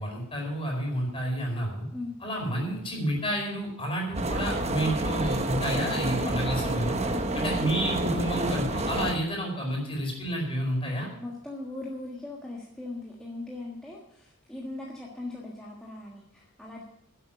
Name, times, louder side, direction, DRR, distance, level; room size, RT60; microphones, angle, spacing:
voice 1, 0.0-1.8 2.2-7.0 7.3-11.1, equal, 25° left, -1 dB, 4.7 m, -30 dB
sound 1, 4.1-9.2, right 1 dB, 30° right, 1.0 m, -29 dB
voice 2, 7.0-7.7 11.2-16.8, left 2 dB, 5° left, -4 dB, 1.5 m, -39 dB
11.5 x 8.2 x 8.7 m, 0.77 s
head